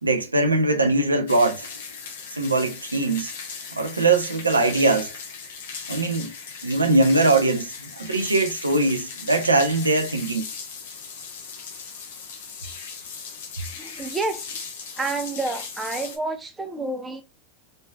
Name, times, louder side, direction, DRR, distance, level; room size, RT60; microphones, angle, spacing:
voice 1, 0.0-1.7 2.4-3.3 3.7-5.1 5.9-6.3 6.6-10.5, right 2 dB, 90° right, 0.5 m, -21 dB
sound 1, 1.3-16.2, left 5 dB, 65° left, 0.8 m, -37 dB
voice 2, 13.8-14.6 15.0-17.2, right 3 dB, 15° right, 0.7 m, -29 dB
3.2 x 2.6 x 2.2 m
figure-of-eight pair, 85°, 0 cm